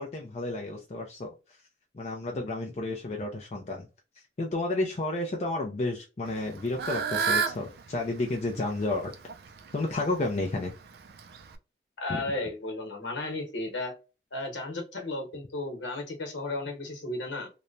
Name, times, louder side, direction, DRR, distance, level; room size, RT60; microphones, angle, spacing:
voice 1, 0.0-1.6 1.9-3.9 4.1-9.1 9.7-10.7 12.1-12.2, left 2 dB, 35° left, 0 dB, 0.4 m, -31 dB
Fowl / Bird, 6.3-11.6, right 6 dB, 60° right, 0.4 m, -33 dB
voice 2, 12.0-13.9 14.3-17.5, left 2 dB, 85° left, 3 dB, 1.0 m, -34 dB
2.9 x 2.1 x 2.5 m, 0.30 s
head